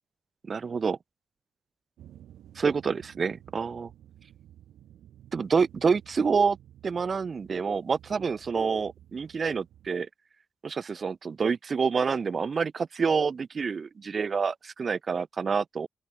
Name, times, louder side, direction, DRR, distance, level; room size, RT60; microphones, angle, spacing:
voice 1, 0.4-1.0 2.6-3.9 5.3-6.6 6.8-10.1 10.6-15.9, right 5 dB, 50° right, 0.6 m, -27 dB
sound 1, 2.0-9.9, right 11 dB, 80° right, 2.9 m, -53 dB
open air
supercardioid pair, 60°, 0 cm